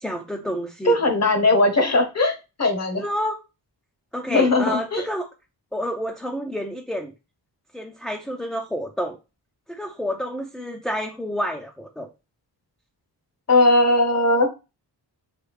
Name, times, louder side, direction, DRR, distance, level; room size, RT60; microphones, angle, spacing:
voice 1, 0.0-1.0 2.9-3.4 4.1-5.3 5.7-7.1 7.7-9.2 9.7-12.1, equal, ahead, 1 dB, 0.4 m, -29 dB
voice 2, 0.8-3.0 4.3-5.0 13.5-14.5, left 2 dB, 40° left, 5 dB, 0.9 m, -19 dB
3.3 x 2.3 x 3.2 m, 0.28 s
cardioid pair, 75°, 42 cm